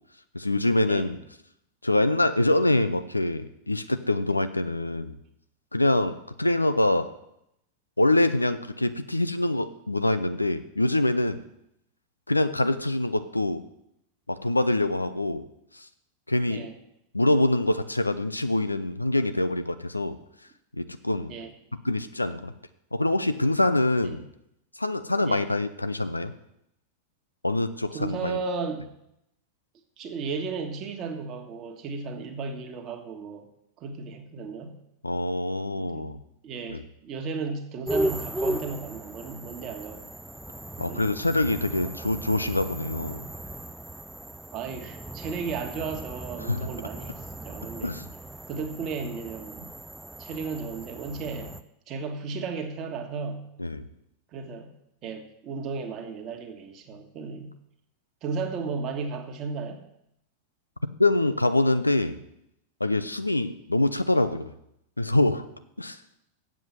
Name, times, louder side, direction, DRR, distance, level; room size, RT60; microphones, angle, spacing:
voice 1, 0.3-1.2 1.8-5.2 5.7-7.1 8.0-11.4 12.3-13.6 14.3-15.5 15.7-15.9 16.3-16.7 17.1-20.2 20.7-21.4 21.8-22.5 22.9-24.3 24.8-26.3 27.4-28.4 35.0-36.2 36.7-36.8 40.8-43.3 46.4-46.7 47.8-48.1 53.6-53.8 61.0-62.2 62.8-64.5 65.0-65.5 65.8-66.0, left 2 dB, 85° left, 11 dB, 0.6 m, -25 dB
voice 2, 27.9-28.9 30.0-33.5 33.8-34.8 35.7-36.1 36.4-40.2 40.9-41.1 41.8-41.9 44.5-47.9 48.5-49.7 50.2-51.5 51.9-53.5 54.3-54.8 55.0-57.5 58.2-59.8, right 4 dB, 35° right, 4 dB, 1.5 m, -34 dB
sound 1, 37.9-51.6, right 1 dB, 5° right, 0.5 m, -36 dB
7.7 x 7.5 x 7.6 m, 0.80 s
figure-of-eight pair, 90°, 0 cm